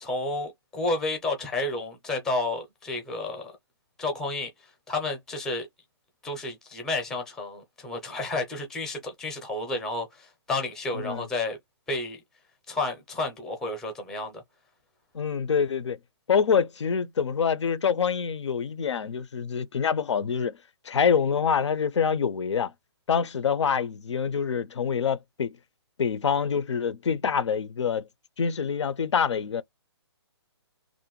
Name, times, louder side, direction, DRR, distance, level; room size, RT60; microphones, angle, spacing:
voice 1, 0.0-3.5 4.0-4.5 4.9-5.7 6.2-11.6 11.9-12.2 12.7-14.4, left 2 dB, 5° left, 0.4 m, -31 dB
voice 2, 10.9-11.3 15.1-16.0 16.3-20.6 20.9-22.7 23.1-25.6 26.0-28.0 28.4-29.6, left 6 dB, 85° left, 0.5 m, -26 dB
2.5 x 2.1 x 2.9 m
hypercardioid pair, 160°, 15 cm